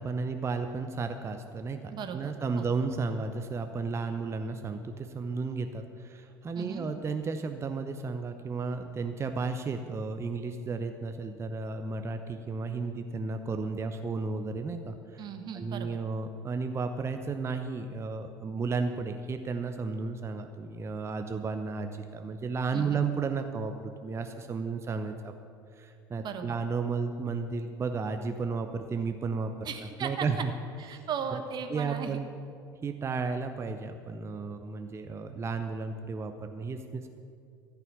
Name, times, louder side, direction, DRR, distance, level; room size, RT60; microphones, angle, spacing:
voice 1, 0.0-1.8 2.1-15.2 15.5-25.3 25.7-29.7 30.0-30.5 30.9-31.0 31.7-32.3 32.8-37.1, right 4 dB, 20° right, 7 dB, 0.7 m, -33 dB
voice 2, 1.9-2.7 6.5-6.9 15.2-16.0 22.7-23.0 26.2-26.5 29.6-30.4 30.8-32.2, right 7 dB, 35° right, 6 dB, 1.3 m, -37 dB
14.0 x 5.9 x 9.4 m, 2.4 s
figure-of-eight pair, 65°, 12 cm